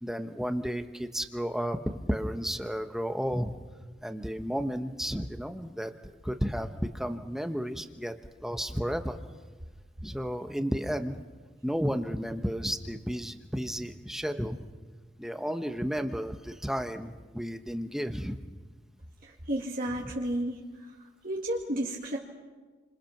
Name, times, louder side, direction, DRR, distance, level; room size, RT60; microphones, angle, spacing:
voice 1, 0.0-3.5 4.0-5.9 6.2-8.1 8.4-9.2 10.0-11.2 11.6-14.6 15.2-18.4 20.0-20.1, equal, ahead, 7 dB, 1.1 m, -32 dB
voice 2, 19.2-20.9 21.2-22.2, right 1 dB, 50° right, -2 dB, 2.2 m, -32 dB
30.0 x 26.5 x 6.0 m, 1.3 s
head